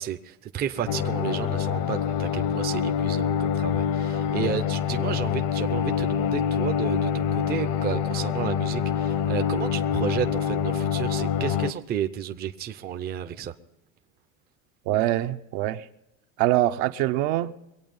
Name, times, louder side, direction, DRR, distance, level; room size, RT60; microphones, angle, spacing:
voice 1, 0.0-13.5, right 9 dB, 25° right, 0.6 m, -32 dB
sound 1, 0.9-11.7, left 8 dB, 65° left, 1.1 m, -26 dB
voice 2, 14.9-15.9 16.4-17.5, right 15 dB, 65° right, 0.9 m, -24 dB
23.0 x 8.8 x 5.4 m
cardioid pair, 145°, 39 cm